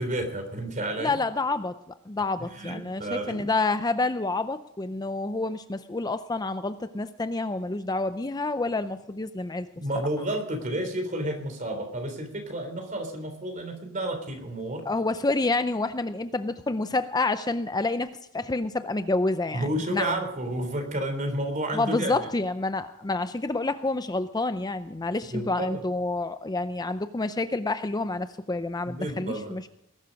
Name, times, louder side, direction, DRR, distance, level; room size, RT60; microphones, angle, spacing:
voice 1, 0.0-1.2 2.4-3.4 9.8-14.8 19.5-22.3 25.3-25.8 28.9-29.5, right 1 dB, 40° right, 6 dB, 3.5 m, -31 dB
voice 2, 1.0-1.8 2.1-9.7 14.9-18.1 18.3-20.2 21.7-29.7, left 2 dB, 20° left, 10 dB, 0.5 m, -28 dB
20.5 x 11.5 x 5.2 m, 0.78 s
head